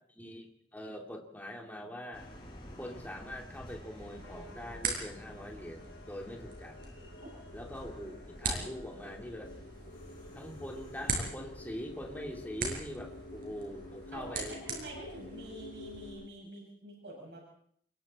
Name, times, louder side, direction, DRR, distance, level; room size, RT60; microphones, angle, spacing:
voice 1, 0.2-0.5 0.7-2.3 2.8-6.9 7.5-9.5 10.3-14.6, equal, 10° left, 1 dB, 2.8 m, -43 dB
sound 1, 2.1-15.5, equal, 30° left, 5.4 m, -52 dB
sound 2, 3.9-16.1, right 3 dB, 50° right, 6.7 m, -42 dB
sound 3, 4.2-16.3, left 2 dB, 85° left, 2.3 m, -51 dB
voice 2, 14.1-17.4, right 1 dB, 75° right, -1 dB, 7.9 m, -46 dB
28.0 x 23.0 x 4.4 m, 0.63 s
head